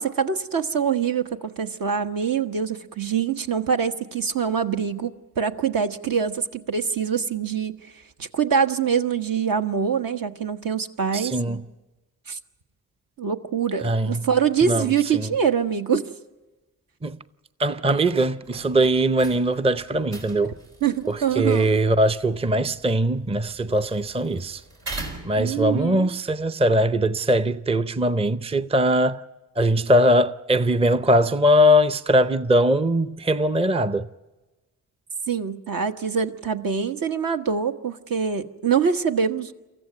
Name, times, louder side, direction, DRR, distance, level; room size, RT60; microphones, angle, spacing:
voice 1, 0.0-7.8 8.2-11.6 12.3-12.4 13.2-16.0 20.8-21.7 25.4-26.1 35.3-39.5, right 7 dB, 60° right, 1.2 m, -24 dB
voice 2, 11.1-11.6 13.8-14.2 14.6-15.3 17.0-17.2 17.6-20.5 21.1-24.6 25.2-29.2 29.6-34.1, equal, 15° right, 0.6 m, -21 dB
sound 1, 18.4-25.9, right 2 dB, 80° right, 4.2 m, -42 dB
24.0 x 14.5 x 9.8 m
supercardioid pair, 50°, 39 cm